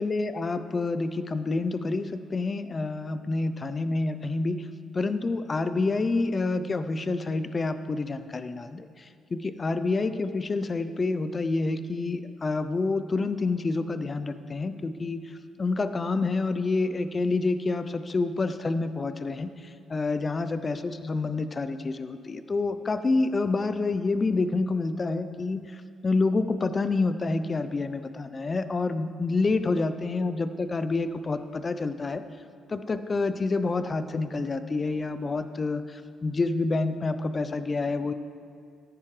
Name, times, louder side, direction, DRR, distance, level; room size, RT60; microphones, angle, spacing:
voice 1, 0.0-4.7 4.9-15.2 15.6-19.5 19.9-32.2 32.7-38.1, left 3 dB, 30° left, 11 dB, 0.6 m, -28 dB
14.0 x 9.6 x 3.3 m, 2.4 s
cardioid pair, 90°, 0 cm